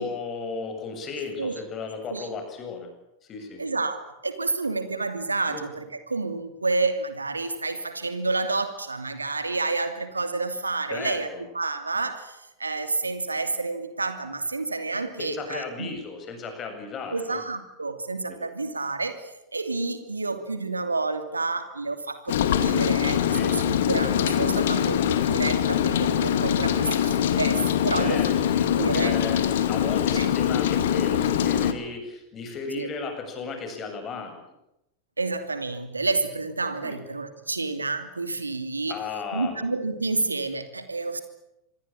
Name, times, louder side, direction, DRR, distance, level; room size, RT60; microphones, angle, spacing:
voice 1, 0.0-2.9 3.3-3.6 5.5-5.6 10.9-11.4 15.2-17.4 18.3-18.4 23.3-23.6 27.9-29.4 29.7-34.4 36.8-37.0 38.9-39.6, left 4 dB, 30° left, 5 dB, 7.7 m, -35 dB
voice 2, 3.6-11.3 11.5-15.9 17.1-28.2 28.7-29.1 30.2-30.3 32.7-32.9 35.2-39.0 39.3-41.2, right 3 dB, 80° right, 9 dB, 2.7 m, -29 dB
Rain, 22.3-31.7, left 9 dB, 60° left, 2.3 m, -23 dB
27.0 x 21.0 x 8.9 m, 0.88 s
figure-of-eight pair, 90°, 0 cm